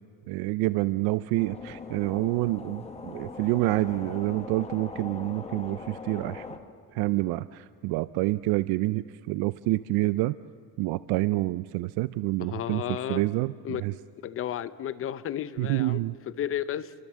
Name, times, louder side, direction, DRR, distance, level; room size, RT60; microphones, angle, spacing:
voice 1, 0.3-6.5 6.9-10.4 10.8-13.9 15.6-16.2, right 19 dB, 90° right, 0.6 m, -28 dB
sound 1, 1.4-6.6, left 4 dB, 20° left, 1.5 m, -41 dB
voice 2, 12.4-13.3 13.6-13.8 14.2-16.9, left 10 dB, 40° left, 0.8 m, -33 dB
28.0 x 24.5 x 7.5 m
cardioid pair, 175°, 35 cm